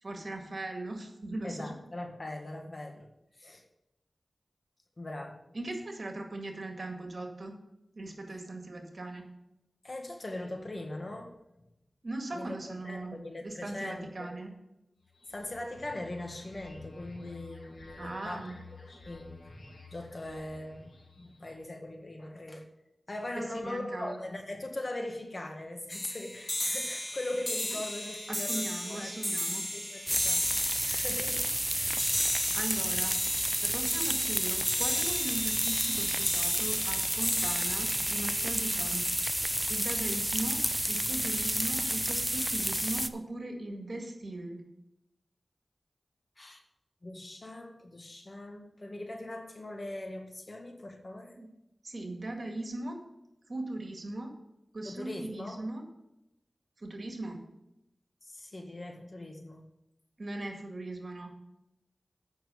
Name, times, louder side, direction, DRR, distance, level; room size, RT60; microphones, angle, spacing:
voice 1, 0.0-1.8 5.5-7.5 7.9-9.3 12.0-14.5 18.0-18.6 23.4-24.2 28.3-29.8 32.5-33.3 33.6-39.1 39.7-40.6 40.9-44.6 51.4-51.5 51.8-53.0 53.5-54.3 54.7-55.8 56.8-57.4 60.2-61.3, right 2 dB, 65° right, 3 dB, 1.9 m, -39 dB
voice 2, 1.4-3.1 3.4-3.6 5.0-5.4 9.8-11.3 12.3-12.6 12.8-14.3 15.3-18.5 18.9-19.5 19.9-22.7 23.1-29.4 29.7-32.2 46.4-46.6 47.0-51.4 54.8-55.6 58.2-59.6, left 1 dB, 50° left, 4 dB, 1.7 m, -41 dB
sound 1, 15.0-21.6, left 3 dB, 85° left, 2.8 m, -51 dB
sound 2, 25.9-39.4, left 1 dB, 20° left, 2.1 m, -35 dB
sound 3, 30.1-43.1, right 1 dB, 10° right, 0.6 m, -30 dB
8.6 x 6.0 x 6.9 m, 0.89 s
cardioid pair, 40°, 0 cm